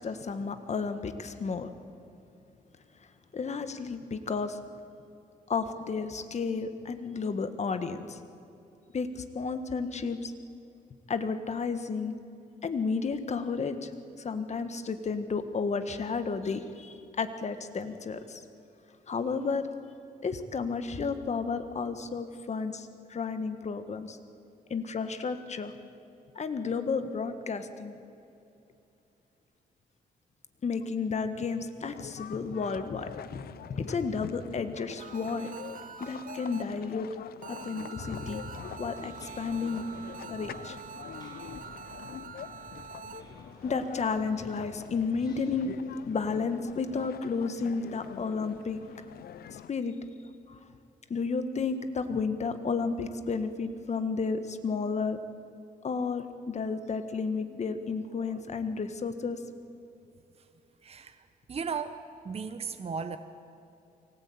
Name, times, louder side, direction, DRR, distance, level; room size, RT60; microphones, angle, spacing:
voice 1, 0.0-1.7 3.3-4.6 5.5-8.2 8.9-10.3 11.1-12.1 12.6-13.9 14.2-18.4 19.1-19.7 20.2-24.2 24.7-25.7 26.3-27.9 30.6-33.4 33.8-35.5 36.0-37.1 37.5-39.8 40.3-40.8 43.6-45.7 46.1-48.8 49.7-49.9 50.5-50.6 51.1-55.2 55.8-59.4, left 5 dB, 45° left, 9 dB, 1.7 m, -32 dB
sound 1, 31.8-49.7, left 10 dB, 70° left, 0.7 m, -45 dB
sound 2, 35.0-37.0 37.4-43.2, right 7 dB, 55° right, 1.4 m, -45 dB
sound 3, 38.7-46.1, left 1 dB, 25° left, 7.0 m, -53 dB
voice 2, 58.1-58.8 60.4-60.5 60.8-63.2, right 5 dB, 40° right, 9 dB, 1.1 m, -37 dB
24.0 x 18.0 x 8.8 m, 2.8 s
cardioid pair, 90°, 16 cm